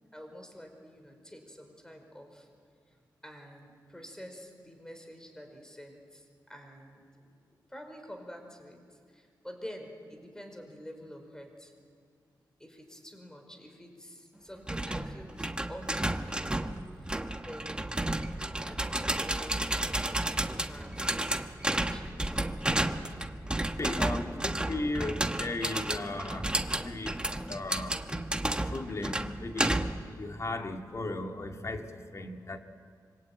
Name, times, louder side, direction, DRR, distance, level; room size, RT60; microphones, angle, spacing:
voice 1, 0.1-2.5 2.9-11.7 12.6-17.9 18.6-22.8 23.9-24.9, equal, 10° left, 4 dB, 5.0 m, -48 dB
sound 1, 14.7-30.1, right 1 dB, 10° right, 1.2 m, -32 dB
voice 2, 23.8-26.5 26.8-27.2 27.4-28.0 28.5-32.6, left 2 dB, 40° left, 4 dB, 2.2 m, -36 dB
25.5 x 24.0 x 9.0 m, 2.1 s
wide cardioid pair, 85°, 7 cm